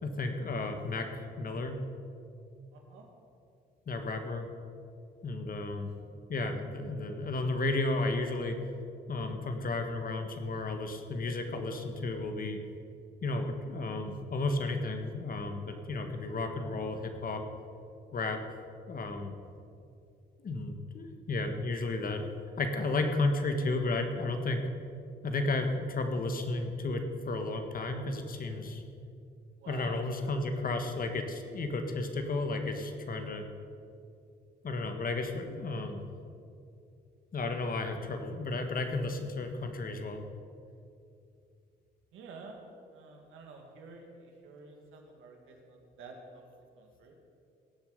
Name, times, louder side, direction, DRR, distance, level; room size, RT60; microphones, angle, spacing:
voice 1, 0.0-1.8 3.9-4.5 5.2-5.9 6.3-8.6 9.1-12.6 13.2-17.4 18.1-18.4 18.9-19.3 20.4-22.2 22.6-24.6 25.2-28.8 29.7-33.5 34.6-36.0 37.3-40.2, left 2 dB, 45° left, 5 dB, 1.5 m, -33 dB
voice 2, 2.7-3.1 28.6-28.7 29.6-30.0 42.1-42.6 42.9-47.1, right 4 dB, 90° right, 1 dB, 2.1 m, -50 dB
18.0 x 7.3 x 5.3 m, 2.5 s
cardioid pair, 90°, 20 cm